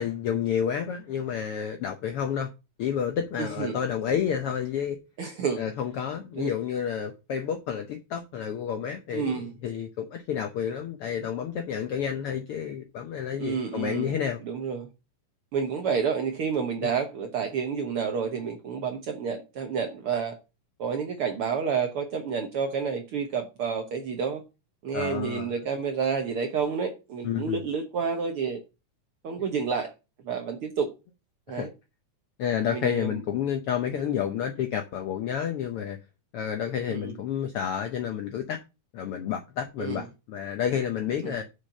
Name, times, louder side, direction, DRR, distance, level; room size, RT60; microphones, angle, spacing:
voice 1, 0.0-2.5 2.8-5.0 5.6-14.4 16.8-16.9 24.9-25.5 27.2-27.6 31.5-31.7 32.4-36.0 36.3-38.6 38.9-41.4, left 8 dB, 90° left, 1.2 m, -30 dB
voice 2, 3.4-3.8 5.2-5.6 6.4-6.5 9.1-9.5 13.4-14.1 14.4-14.9 15.5-20.4 20.8-24.4 24.8-28.6 29.2-29.9 30.2-30.9 31.5-31.7 32.6-33.2 36.9-37.1 39.8-40.0 41.2-41.4, right 6 dB, 65° right, 1.4 m, -29 dB
6.5 x 5.9 x 6.5 m
omnidirectional pair, 3.6 m